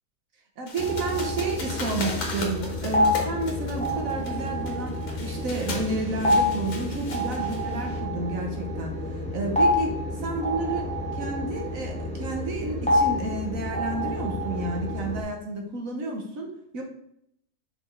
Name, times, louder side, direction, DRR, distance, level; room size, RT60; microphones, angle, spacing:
voice 1, 0.6-8.9 9.3-10.0 10.2-10.9 11.1-16.8, right 2 dB, 60° right, 2 dB, 1.4 m, -31 dB
sound 1, 0.7-8.0, left 3 dB, 70° left, 1.7 m, -38 dB
sound 2, 0.8-15.2, left 1 dB, 5° left, 0.9 m, -28 dB
5.5 x 4.3 x 4.4 m, 0.72 s
omnidirectional pair, 1.7 m